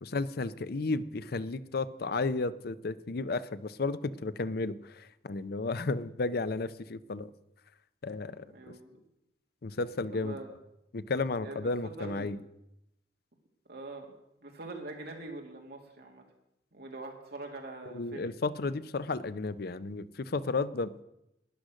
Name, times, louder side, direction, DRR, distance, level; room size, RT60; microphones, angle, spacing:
voice 1, 0.0-7.3 8.0-8.5 9.6-10.4 10.9-12.4 17.9-21.0, left 3 dB, 60° left, 15 dB, 0.6 m, -33 dB
voice 2, 8.5-9.0 10.1-10.5 11.4-12.4 13.6-14.1 14.4-16.3 16.7-18.3, right 2 dB, 60° right, 2 dB, 2.6 m, -43 dB
12.5 x 10.0 x 6.3 m, 0.85 s
head